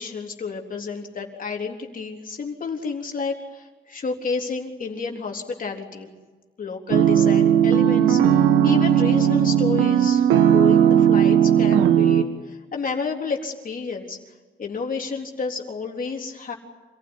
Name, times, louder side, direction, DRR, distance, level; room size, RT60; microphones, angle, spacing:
voice 1, 0.0-6.1 6.6-14.2 14.6-16.5, left 4 dB, 45° left, 1 dB, 3.8 m, -30 dB
sound 1, 6.9-12.2, right 9 dB, 85° right, 1.6 m, -17 dB
27.0 x 15.5 x 9.9 m, 1.3 s
cardioid pair, 90°, 20 cm